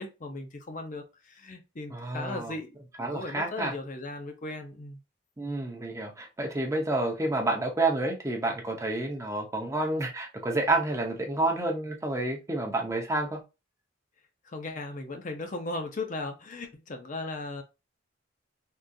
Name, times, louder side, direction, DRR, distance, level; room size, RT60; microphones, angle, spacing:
voice 1, 0.0-2.8 3.1-5.0 14.4-17.6, left 2 dB, 40° left, 0.5 m, -37 dB
voice 2, 1.9-2.5 3.0-3.7 5.4-13.4, right 2 dB, 15° right, 0.6 m, -29 dB
3.6 x 2.4 x 2.6 m
head